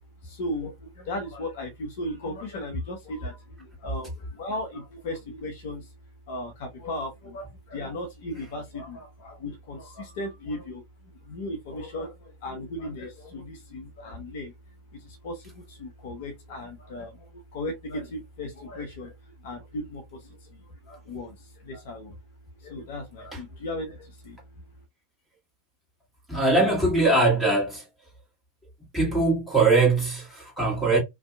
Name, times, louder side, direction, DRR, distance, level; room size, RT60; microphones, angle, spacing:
voice 1, 0.4-0.7 1.1-3.4 3.8-4.1 4.4-5.8 6.3-10.8 11.3-12.1 12.4-14.5 15.2-15.3 15.8-17.1 17.5-19.1 19.4-20.0 20.9-21.3 21.7-22.1 22.6-24.0 24.3-24.4, left 1 dB, 50° left, 0.6 m, -35 dB
voice 2, 26.3-27.8 28.9-31.0, right 3 dB, ahead, 1.3 m, -21 dB
2.6 x 2.2 x 2.2 m
figure-of-eight pair, 90°, 0 cm